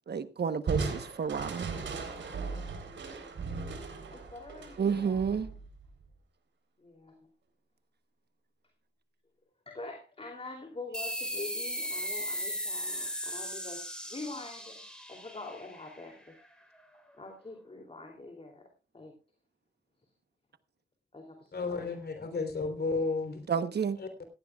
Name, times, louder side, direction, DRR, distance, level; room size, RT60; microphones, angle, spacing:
voice 1, 0.1-1.7 3.1-3.2 4.8-5.5 23.5-24.0, right 6 dB, 60° right, 1.1 m, -30 dB
Crushing, 0.7-6.1, right 4 dB, 85° right, 3.9 m, -37 dB
voice 2, 4.1-5.5 6.8-7.2 9.7-13.8 14.1-14.8 15.1-16.2 16.9-18.7 18.9-19.1 21.1-21.9, left 2 dB, 30° left, 3.0 m, -45 dB
sound 1, 10.9-16.1, equal, 5° left, 4.1 m, -37 dB
voice 3, 21.5-23.5 24.0-24.2, left 3 dB, 60° left, 3.6 m, -33 dB
17.5 x 15.5 x 2.4 m
wide cardioid pair, 95°, 19 cm